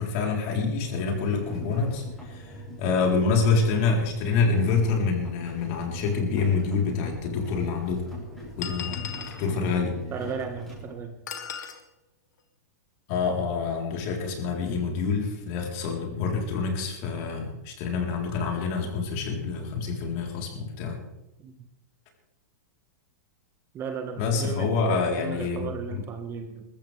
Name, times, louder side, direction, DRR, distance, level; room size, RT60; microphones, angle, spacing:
voice 1, 0.0-2.5 2.8-8.0 8.6-9.1 9.4-10.0 13.1-21.0 24.2-25.7, left 4 dB, 45° left, 1 dB, 4.0 m, -26 dB
sound 1, 0.8-10.9, equal, 5° left, 6.5 m, -41 dB
sound 2, 6.6-6.7 7.6-7.7 8.6-9.5 11.3-11.8, left 8 dB, 85° left, 2.1 m, -36 dB
voice 2, 10.1-11.2 21.4-21.5 23.7-26.6, right 6 dB, 25° right, 5 dB, 1.6 m, -35 dB
21.0 x 14.5 x 3.5 m, 0.92 s
hypercardioid pair, 145°, 9 cm